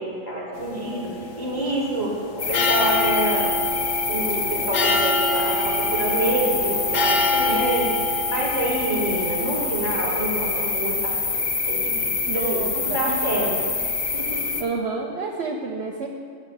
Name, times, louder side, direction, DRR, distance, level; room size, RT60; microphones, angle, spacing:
voice 1, 0.0-3.5 4.1-13.7 14.1-14.4, right 1 dB, 25° left, -6 dB, 2.7 m, -27 dB
sound 1, 0.5-9.7, left 2 dB, 65° left, 1.2 m, -27 dB
sound 2, 2.4-14.6, left 4 dB, 45° left, 0.6 m, -26 dB
voice 2, 12.3-13.6 14.6-16.1, right 4 dB, 60° right, 2 dB, 0.8 m, -29 dB
7.4 x 6.2 x 6.8 m, 2.1 s
omnidirectional pair, 1.5 m